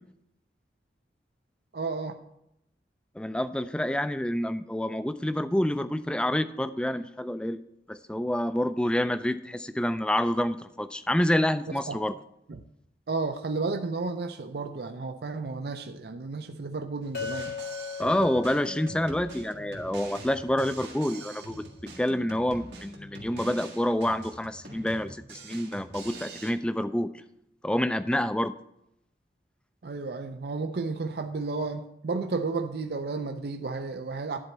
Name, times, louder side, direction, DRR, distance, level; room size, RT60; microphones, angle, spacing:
voice 1, 1.7-2.2 11.7-12.0 12.5-12.6 13.1-17.6 29.8-34.4, right 3 dB, 65° right, 7 dB, 0.5 m, -32 dB
voice 2, 3.2-7.6 7.9-12.2 18.0-21.6 22.0-27.1 27.6-28.5, left 1 dB, 5° left, 12 dB, 0.3 m, -28 dB
Drum kit, 17.0-26.5, right 2 dB, 85° right, 1.7 m, -45 dB
Chink clink, 17.1-21.4, left 6 dB, 65° left, 0.6 m, -40 dB
11.0 x 4.3 x 7.1 m, 0.81 s
head